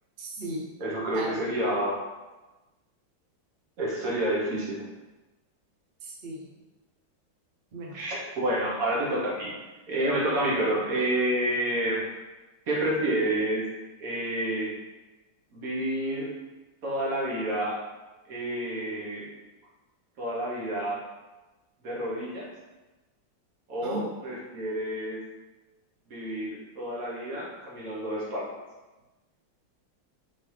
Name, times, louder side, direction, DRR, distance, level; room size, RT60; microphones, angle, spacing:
voice 1, 0.2-0.6 1.1-1.4 6.0-6.4 7.7-8.0 23.8-24.0, right 2 dB, 85° right, -3 dB, 0.4 m, -36 dB
voice 2, 0.8-2.0 3.8-4.8 7.9-9.5 9.9-12.0 12.7-13.6 14.0-14.7 15.5-16.3 16.8-17.8 18.2-19.3 20.2-21.0 21.8-22.5 23.7-25.2 26.1-28.5, right 1 dB, 50° right, -5 dB, 1.5 m, -29 dB
4.4 x 3.6 x 3.2 m, 1.1 s
omnidirectional pair, 2.1 m